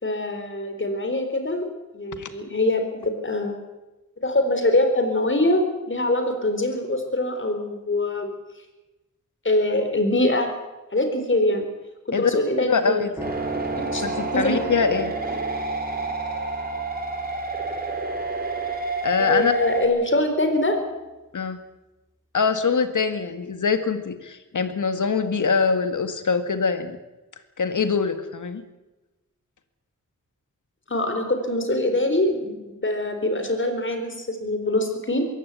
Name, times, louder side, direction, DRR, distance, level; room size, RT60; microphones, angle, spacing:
voice 1, 0.0-1.7 1.9-3.5 4.2-8.3 9.4-10.5 10.9-11.7 12.2-13.0 13.7-14.5 19.2-20.8 30.9-35.3, left 1 dB, 40° left, 6 dB, 4.2 m, -23 dB
voice 2, 12.6-13.3 14.0-15.4 19.0-19.5 21.3-21.6 22.3-27.0 27.6-28.6, left 5 dB, 75° left, 9 dB, 2.0 m, -24 dB
sound 1, 13.2-19.8, right 2 dB, 10° right, 2.1 m, -38 dB
sound 2, 13.2-19.9, right 3 dB, 30° right, 4.4 m, -29 dB
22.5 x 17.0 x 8.4 m, 1.1 s
wide cardioid pair, 90°, 31 cm